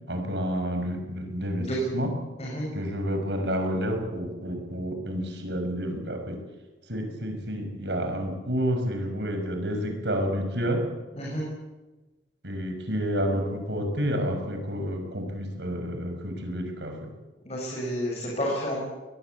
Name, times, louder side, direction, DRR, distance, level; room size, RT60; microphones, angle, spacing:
voice 1, 0.1-2.1 2.7-6.4 6.9-10.8 12.4-17.1, equal, 65° right, 5 dB, 6.3 m, -29 dB
voice 2, 17.5-18.8, equal, 35° left, -2 dB, 6.7 m, -30 dB
22.0 x 21.5 x 8.5 m, 1.2 s
head